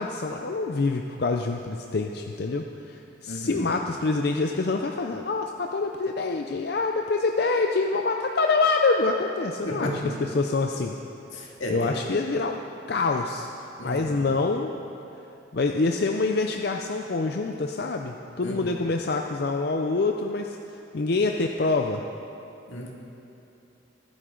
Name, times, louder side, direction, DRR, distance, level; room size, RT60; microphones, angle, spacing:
voice 1, 0.0-11.0 11.4-12.6 12.9-14.7 15.5-20.6 20.9-22.0, left 3 dB, 55° left, 3 dB, 0.5 m, -26 dB
voice 2, 3.3-3.6 9.6-10.1 11.3-12.0 13.8-14.2 18.4-18.6 22.7-22.9, equal, 80° left, -1 dB, 2.0 m, -33 dB
23.0 x 9.3 x 3.8 m, 2.9 s
head